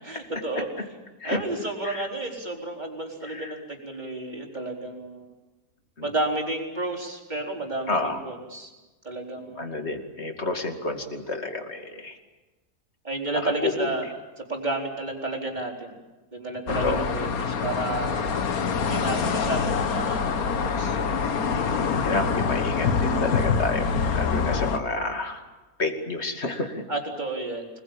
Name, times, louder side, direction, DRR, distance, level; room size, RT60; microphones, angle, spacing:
voice 1, 0.0-0.7 1.2-5.3 6.0-8.7 9.0-9.9 13.0-14.1 14.4-16.0 16.3-18.2 18.9-21.0 26.9-27.8, right 2 dB, 30° right, 0 dB, 4.5 m, -31 dB
voice 2, 3.3-3.6 6.0-6.1 7.9-8.2 9.6-12.2 13.4-13.9 16.7-17.1 21.5-25.4 25.8-26.8, left 3 dB, 45° left, 5 dB, 2.7 m, -30 dB
sound 1, 16.7-24.8, left 5 dB, 70° left, 1.7 m, -25 dB
26.5 x 20.5 x 8.8 m, 1.2 s
omnidirectional pair, 1.6 m